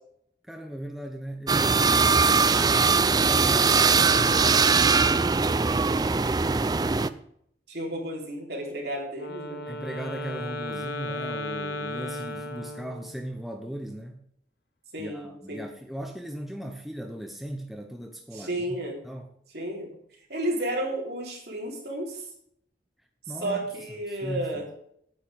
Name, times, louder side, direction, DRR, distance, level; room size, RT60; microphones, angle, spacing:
voice 1, 0.5-7.0 9.7-14.2 15.0-18.8 19.0-19.3 23.3-23.6 24.1-24.6, right 1 dB, ahead, 3 dB, 0.8 m, -38 dB
sound 1, 1.5-7.1, right 4 dB, 20° right, 0.3 m, -21 dB
voice 2, 7.7-9.6 14.9-15.6 18.3-19.0 19.5-19.9 20.3-22.3 23.4-24.6, right 1 dB, 60° right, -1 dB, 3.8 m, -32 dB
Wind instrument woodwind instrument, 9.1-13.2, left 1 dB, 60° left, 1.1 m, -35 dB
9.3 x 9.1 x 5.2 m, 0.70 s
head